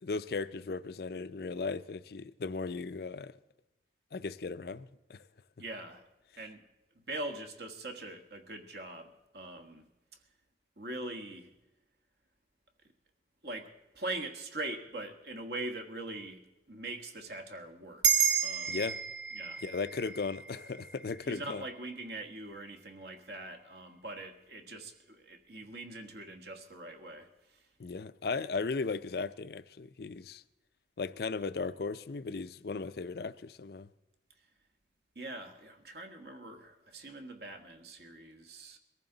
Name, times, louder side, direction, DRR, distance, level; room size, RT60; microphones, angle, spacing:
voice 1, 0.0-3.4 4.1-5.3 18.7-19.0 19.6-21.6 27.8-30.4 31.0-33.9, left 4 dB, 55° left, 0.5 m, -36 dB
voice 2, 5.6-6.0 6.3-6.6 7.1-9.9 10.8-11.5 13.4-18.8 19.3-19.6 21.2-27.3 35.1-38.8, right 2 dB, 60° right, 1.5 m, -42 dB
sound 1, 18.0-22.7, right 7 dB, 80° right, 1.3 m, -32 dB
22.0 x 14.5 x 3.9 m
head